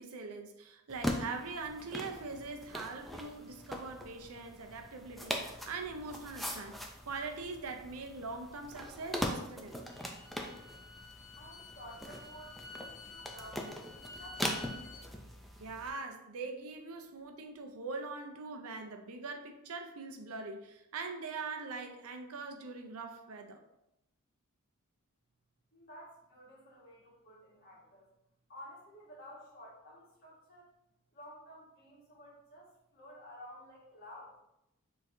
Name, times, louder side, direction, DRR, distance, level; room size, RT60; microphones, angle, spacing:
voice 1, 0.0-9.9 15.6-23.6, right 4 dB, 70° right, 5 dB, 0.6 m, -42 dB
sound 1, 0.9-15.9, equal, ahead, 0.4 m, -41 dB
Bowed string instrument, 9.7-15.1, left 3 dB, 75° left, 0.8 m, -51 dB
voice 2, 11.4-15.2 25.7-28.1 28.5-30.7 31.1-34.3, equal, 45° left, -5 dB, 1.7 m, -53 dB
6.3 x 3.1 x 2.7 m, 0.85 s
head